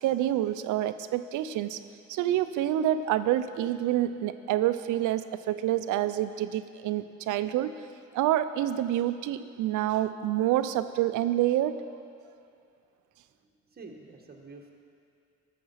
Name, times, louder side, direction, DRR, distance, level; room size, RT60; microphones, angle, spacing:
voice 1, 0.0-1.8 2.1-7.7 8.1-11.8, right 12 dB, 85° right, 12 dB, 0.5 m, -27 dB
voice 2, 13.7-14.7, right 3 dB, 30° right, 1 dB, 1.6 m, -47 dB
14.0 x 6.7 x 5.7 m, 2.5 s
cardioid pair, 90°, 30 cm